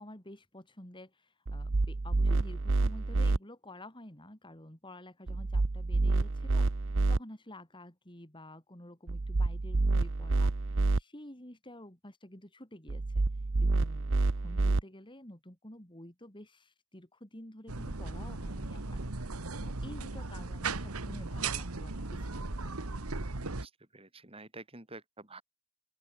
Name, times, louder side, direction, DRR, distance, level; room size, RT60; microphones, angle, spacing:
voice 1, 0.0-10.5 10.9-13.2 13.6-19.0 19.5-22.7, left 1 dB, 20° left, 4.1 m, -50 dB
sound 1, 1.5-3.4 5.3-7.2 9.1-11.0 12.9-14.8, right 3 dB, 60° right, 0.8 m, -28 dB
sound 2, 17.7-23.7, right 3 dB, 90° right, 1.7 m, -37 dB
voice 2, 23.4-25.4, right 2 dB, 25° right, 5.8 m, -50 dB
open air
head